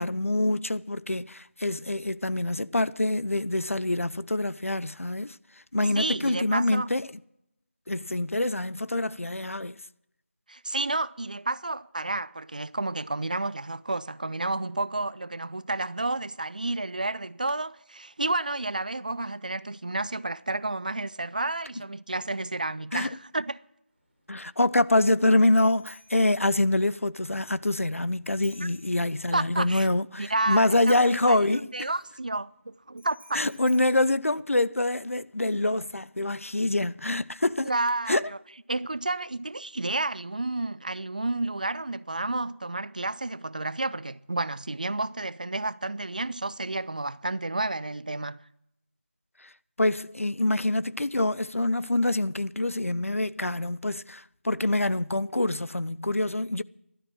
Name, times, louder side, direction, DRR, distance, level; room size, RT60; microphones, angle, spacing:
voice 1, 0.0-5.4 5.7-7.1 7.9-9.8 22.9-23.1 24.3-31.9 33.3-37.7 38.1-38.2 49.4-49.5 49.8-56.6, left 2 dB, 85° left, 0.6 m, -25 dB
voice 2, 5.9-6.9 10.5-23.6 29.3-29.9 30.2-33.4 37.6-38.4 38.7-48.4, right 2 dB, 35° right, 0.4 m, -31 dB
Bicycle bell, 23.9-35.0, right 1 dB, 5° right, 4.2 m, -56 dB
14.0 x 12.5 x 6.1 m
figure-of-eight pair, 170°, 7 cm